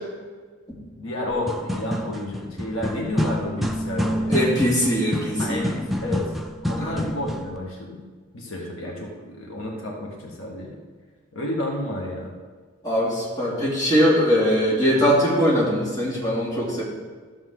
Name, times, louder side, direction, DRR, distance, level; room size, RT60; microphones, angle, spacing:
voice 1, 1.0-4.5 5.4-6.3 6.6-8.0 8.3-10.8 11.3-12.3, left 1 dB, 75° left, -2 dB, 1.7 m, -31 dB
sound 1, 1.3-7.6, equal, ahead, 0.4 m, -28 dB
voice 2, 4.3-5.6 6.8-7.0 12.8-16.8, equal, 20° left, -8 dB, 2.8 m, -21 dB
13.0 x 7.1 x 3.9 m, 1.5 s
head